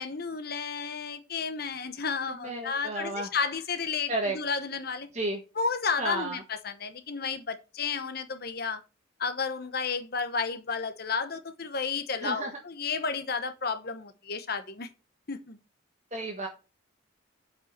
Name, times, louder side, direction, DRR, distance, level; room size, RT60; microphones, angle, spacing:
voice 1, 0.0-5.1 5.5-8.8 9.2-14.9 15.3-15.6, left 5 dB, 50° left, 1.0 m, -32 dB
voice 2, 2.4-3.3 4.1-4.3 5.1-5.4 6.0-6.4 12.2-12.5 16.1-16.5, right 2 dB, 35° right, 1.6 m, -32 dB
7.7 x 5.5 x 6.6 m
head